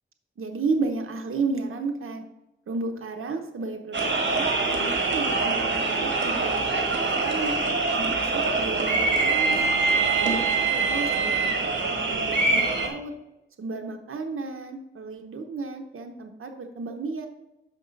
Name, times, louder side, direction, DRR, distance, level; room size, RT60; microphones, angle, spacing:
voice 1, 0.4-2.2 2.7-7.5 7.9-9.6 10.2-13.1 13.6-17.3, right 3 dB, 90° right, 3 dB, 0.9 m, -33 dB
sound 1, 3.9-12.9, right 3 dB, 60° right, 1.6 m, -24 dB
6.6 x 5.3 x 5.1 m, 0.95 s
wide cardioid pair, 75°, 21 cm